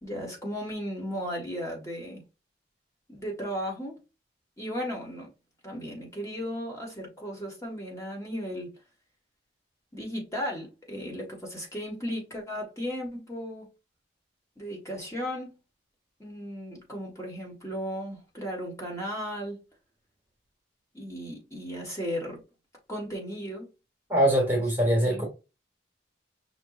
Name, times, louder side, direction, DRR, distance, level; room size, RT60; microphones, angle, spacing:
voice 1, 0.0-2.2 3.1-4.0 4.6-5.3 5.6-8.7 9.9-13.7 14.6-15.6 16.2-19.6 20.9-22.4 22.9-23.7 24.5-24.6 25.0-25.3, equal, 15° left, 1.7 m, -35 dB
voice 2, 24.1-25.3, right 1 dB, 10° right, 1.3 m, -23 dB
5.8 x 3.0 x 2.5 m
head